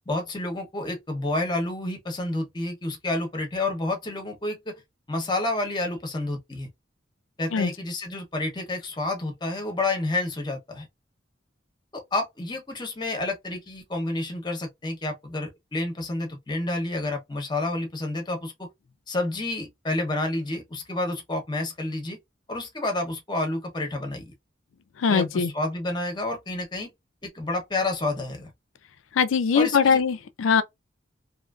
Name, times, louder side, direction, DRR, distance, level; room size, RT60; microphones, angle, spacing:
voice 1, 0.1-4.8 5.1-6.7 7.4-10.9 11.9-18.7 19.1-22.2 22.5-24.3 25.1-26.9 27.2-28.5 29.5-30.0, left 2 dB, 25° left, 0.8 m, -29 dB
voice 2, 25.0-25.5 29.2-30.6, left 6 dB, 90° left, 0.4 m, -21 dB
2.8 x 2.4 x 2.4 m
head